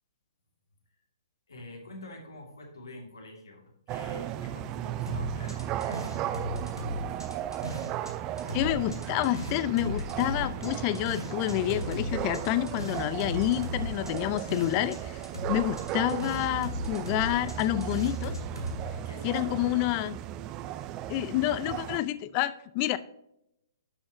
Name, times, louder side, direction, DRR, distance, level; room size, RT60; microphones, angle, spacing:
voice 1, 1.5-6.1 19.0-19.6, left 2 dB, 65° left, 0 dB, 2.7 m, -46 dB
sound 1, 3.9-22.0, right 12 dB, 25° right, 0.4 m, -36 dB
sound 2, 5.1-8.1 8.4-15.0 15.2-18.8, left 1 dB, 90° left, 2.6 m, -37 dB
voice 2, 8.5-15.2 15.5-18.4 19.2-20.2 21.1-23.0, left 14 dB, 30° left, 16 dB, 0.5 m, -28 dB
11.5 x 6.3 x 3.0 m, 0.81 s
figure-of-eight pair, 125°, 2 cm